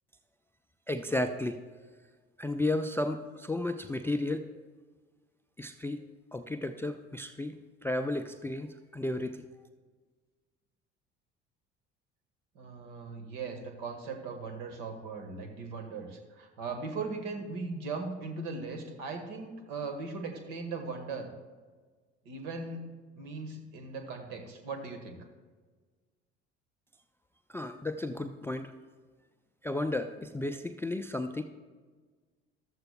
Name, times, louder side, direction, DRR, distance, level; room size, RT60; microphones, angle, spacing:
voice 1, 0.9-1.6 2.4-4.5 5.6-6.0 6.3-7.6 7.8-9.4 27.5-28.7 29.6-31.4, left 2 dB, 5° left, 9 dB, 0.4 m, -33 dB
voice 2, 12.5-21.3 22.2-22.8 23.2-25.2, right 4 dB, 60° right, 6 dB, 1.5 m, -39 dB
14.0 x 12.5 x 2.2 m, 1.4 s
figure-of-eight pair, 60°, 35 cm